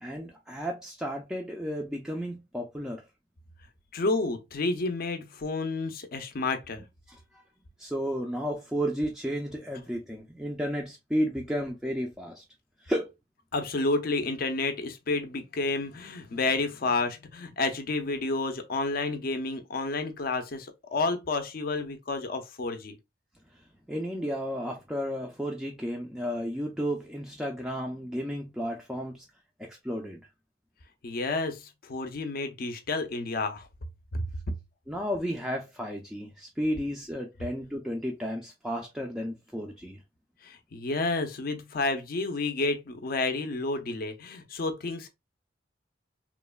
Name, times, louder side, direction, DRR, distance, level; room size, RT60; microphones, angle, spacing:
voice 1, 0.0-3.0 7.1-7.4 7.8-12.4 12.8-13.1 23.9-29.2 29.6-30.2 34.9-40.0, equal, 5° right, 0.4 m, -33 dB
voice 2, 3.9-6.8 13.5-23.0 31.0-33.7 34.1-34.3 40.4-45.1, left 3 dB, 55° left, 0.5 m, -30 dB
3.1 x 2.1 x 2.2 m
head